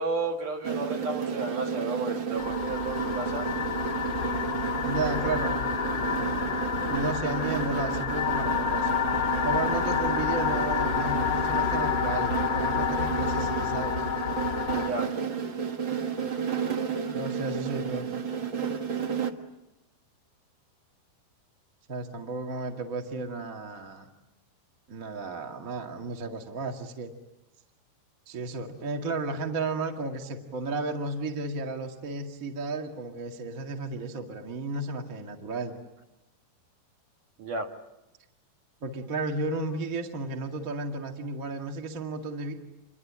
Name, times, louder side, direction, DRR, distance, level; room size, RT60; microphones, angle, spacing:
voice 1, 0.0-3.5 14.7-15.2 37.4-37.7, right 3 dB, 60° right, 3 dB, 3.0 m, -33 dB
sound 1, 0.6-19.3, right 6 dB, 75° right, 1.1 m, -32 dB
sound 2, 2.4-14.9, left 8 dB, 45° left, 1.2 m, -29 dB
voice 2, 4.8-5.5 6.9-8.9 9.4-14.0 17.1-18.1 21.9-24.1 24.9-27.1 28.3-35.7 38.8-42.5, right 3 dB, 30° right, 2 dB, 1.6 m, -33 dB
27.5 x 23.0 x 8.7 m, 0.98 s
omnidirectional pair, 4.7 m